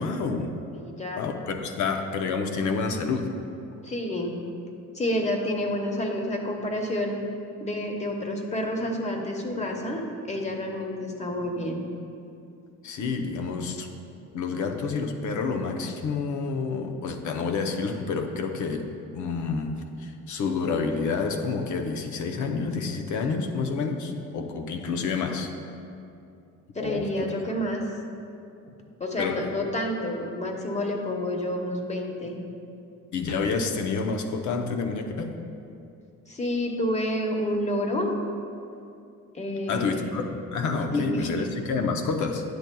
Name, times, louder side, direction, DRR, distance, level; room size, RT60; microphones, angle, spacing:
voice 1, 0.0-0.6 1.2-3.3 12.8-13.9 14.3-25.5 26.8-27.3 29.2-29.5 33.1-35.4 39.7-42.4, left 4 dB, 75° left, 5 dB, 0.8 m, -29 dB
voice 2, 0.7-1.2 3.8-4.3 4.9-7.2 7.6-11.8 26.7-27.9 29.0-32.3 36.3-38.2 39.3-40.1 40.9-41.4, left 1 dB, 20° left, 2 dB, 1.1 m, -29 dB
10.5 x 7.8 x 2.3 m, 2.6 s
cardioid pair, 90°, 30 cm